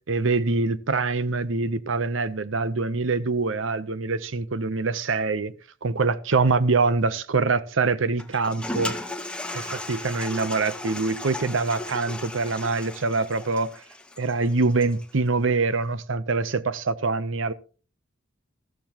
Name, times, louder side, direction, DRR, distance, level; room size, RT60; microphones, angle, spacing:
voice 1, 0.1-5.5 5.8-9.0 9.5-13.7 14.2-17.5, right 3 dB, 75° right, 0.8 m, -24 dB
Toilet flush, 8.2-15.1, left 1 dB, 5° left, 1.0 m, -36 dB
13.5 x 13.5 x 3.0 m
head